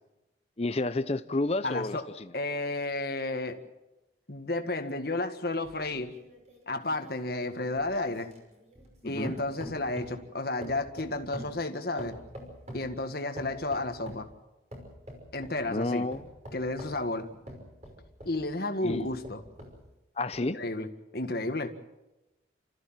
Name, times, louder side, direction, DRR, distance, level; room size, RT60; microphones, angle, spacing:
voice 1, 0.6-2.3 9.0-9.3 15.7-16.2 18.8-19.1 20.2-20.6, left 2 dB, 35° left, 0.7 m, -30 dB
voice 2, 1.6-2.0 2.3-3.6 4.3-6.2 6.7-8.3 9.0-12.2 12.7-14.3 15.3-16.1 16.5-17.3 18.3-19.4 20.4-21.8, left 2 dB, 55° left, 1.8 m, -32 dB
sound 1, 5.6-9.0 9.2-10.3 10.6-12.9 13.4-14.3 14.7-15.6 16.1-18.4 18.9-19.8 20.3-20.4, equal, 35° right, 5.8 m, -45 dB
29.5 x 14.5 x 7.6 m
head